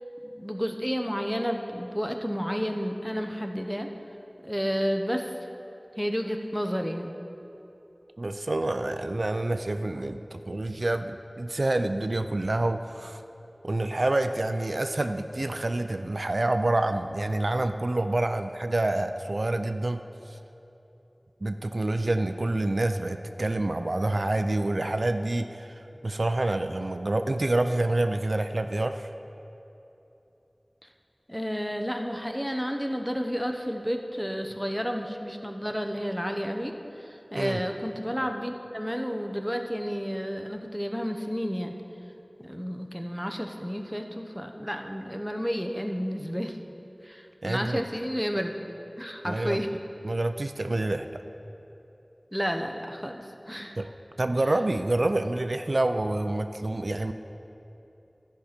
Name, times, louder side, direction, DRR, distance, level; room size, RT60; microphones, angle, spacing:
voice 1, 0.2-3.9 4.4-5.3 6.0-7.1 31.3-41.8 42.4-46.6 47.0-48.5 49.0-49.7 52.3-53.8, equal, ahead, 4 dB, 0.7 m, -31 dB
voice 2, 8.2-13.2 13.6-20.0 20.3-20.4 21.4-29.1 37.4-37.6 47.4-47.8 49.2-49.6 50.0-51.2 53.8-53.9 54.2-57.1, right 2 dB, 70° right, 8 dB, 0.4 m, -27 dB
13.0 x 5.6 x 5.0 m, 2.9 s
wide cardioid pair, 45°, 0 cm